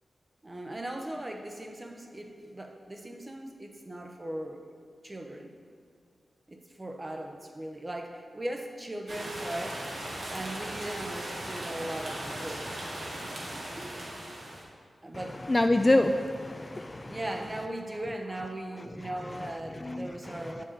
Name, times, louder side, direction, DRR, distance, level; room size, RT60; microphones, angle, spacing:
voice 1, 0.4-4.7 5.0-5.5 6.5-9.8 10.3-12.8 13.8-14.0 15.0-15.4 17.1-20.6, right 1 dB, 25° right, 3 dB, 0.8 m, -38 dB
sound 1, 9.1-14.6, right 1 dB, 70° right, 1.7 m, -38 dB
voice 2, 15.5-17.2 19.8-20.1 20.3-20.6, left 2 dB, 25° left, 7 dB, 0.3 m, -26 dB
7.9 x 6.4 x 4.0 m, 2.2 s
wide cardioid pair, 90°, 0 cm